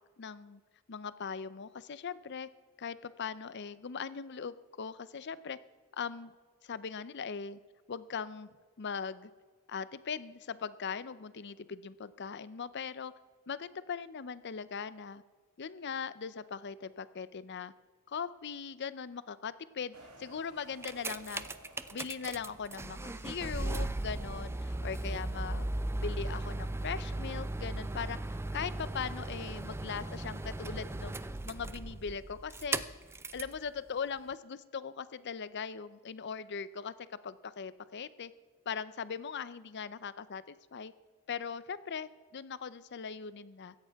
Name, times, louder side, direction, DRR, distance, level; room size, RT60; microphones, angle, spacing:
voice 1, 0.2-0.6 0.9-2.5 2.8-5.6 6.0-6.3 6.6-7.6 7.9-8.5 8.8-9.3 9.7-13.1 13.5-15.2 15.6-17.7 18.1-21.5 21.9-25.7 26.0-31.2 31.5-32.8 33.3-36.9 37.2-38.3 38.7-40.9 41.3-43.7, left 6 dB, 50° left, 16 dB, 0.6 m, -40 dB
sound 1, 19.9-24.9, right 1 dB, 90° right, 1.9 m, -57 dB
sound 2, 20.6-33.6 34.3-34.4, right 2 dB, 10° right, 0.4 m, -37 dB
16.5 x 13.5 x 3.5 m, 1.5 s
head